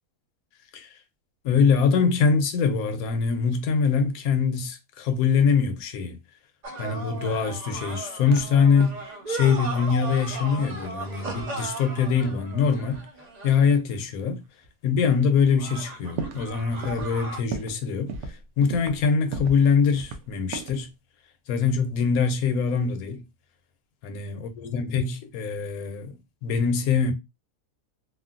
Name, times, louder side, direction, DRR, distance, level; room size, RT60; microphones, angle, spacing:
voice 1, 1.4-6.2 6.8-9.0 9.3-13.0 13.4-14.4 14.8-18.1 18.6-20.9 21.5-23.2 24.0-26.2 26.4-27.1, left 6 dB, 70° left, 1.0 m, -23 dB
sound 1, 6.6-13.9 15.5-17.4, right 2 dB, 90° right, 0.3 m, -36 dB
sound 2, 8.3-8.5 8.8-9.1 10.6-10.9 11.3-11.5 12.9-13.0 13.9-14.0 14.6-14.7 15.2-15.3 15.5-16.5 16.8-17.2 17.5-17.8 18.1-19.0 19.3-19.6 19.9-20.9, right 5 dB, 70° right, 1.0 m, -36 dB
3.1 x 2.4 x 2.4 m
omnidirectional pair, 1.7 m